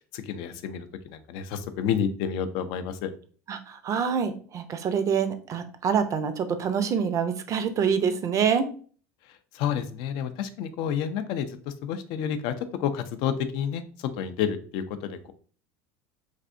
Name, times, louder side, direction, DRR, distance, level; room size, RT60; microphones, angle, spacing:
voice 1, 0.1-3.1 9.5-12.5 12.8-15.3, left 8 dB, 60° left, 11 dB, 0.4 m, -30 dB
voice 2, 3.5-8.7, right 7 dB, 40° right, 9 dB, 0.5 m, -26 dB
3.3 x 2.7 x 2.5 m, 0.43 s
hypercardioid pair, 85°, 8 cm